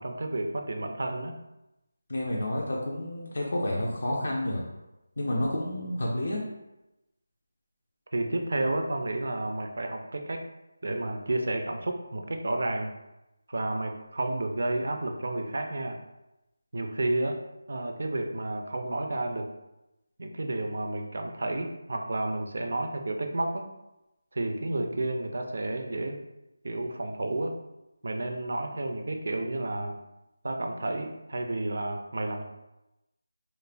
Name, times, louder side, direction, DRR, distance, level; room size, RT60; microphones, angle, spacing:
voice 1, 0.0-1.3 8.1-10.5 10.8-12.9 13.5-16.0 16.7-17.4 17.7-19.5 20.2-23.7 24.3-26.2 26.6-27.6 28.0-30.0 30.4-32.5, right 2 dB, 60° right, 4 dB, 0.3 m, -31 dB
voice 2, 2.1-4.6 5.2-6.4, left 1 dB, 60° left, -3 dB, 0.4 m, -30 dB
2.9 x 2.1 x 2.4 m, 0.95 s
figure-of-eight pair, 175°, 0 cm